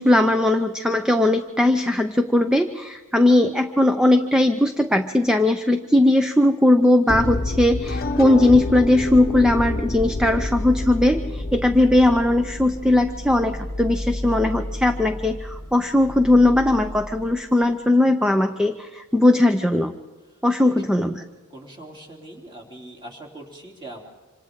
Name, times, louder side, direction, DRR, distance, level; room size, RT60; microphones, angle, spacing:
voice 1, 0.0-19.9 20.4-21.2, left 1 dB, 5° right, 6 dB, 0.6 m, -19 dB
sound 1, 7.1-13.1, left 2 dB, 45° left, 0.9 m, -28 dB
sound 2, 9.0-17.7, left 1 dB, 50° right, 4.6 m, -33 dB
voice 2, 20.3-20.8 21.5-24.0, right 1 dB, 20° right, 0 dB, 3.2 m, -42 dB
27.0 x 26.5 x 3.7 m, 1.3 s
head